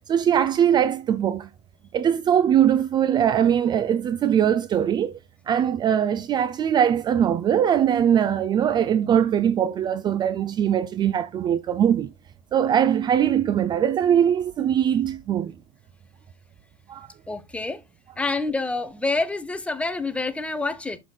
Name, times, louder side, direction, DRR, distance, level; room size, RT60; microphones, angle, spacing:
voice 1, 0.1-1.5 1.9-5.2 5.5-12.1 12.5-15.5 16.9-17.1, right 9 dB, 30° right, 0.4 m, -21 dB
voice 2, 17.3-17.8 18.2-21.0, left 3 dB, 10° left, 1.0 m, -27 dB
7.0 x 6.5 x 2.3 m
hypercardioid pair, 105°, 15 cm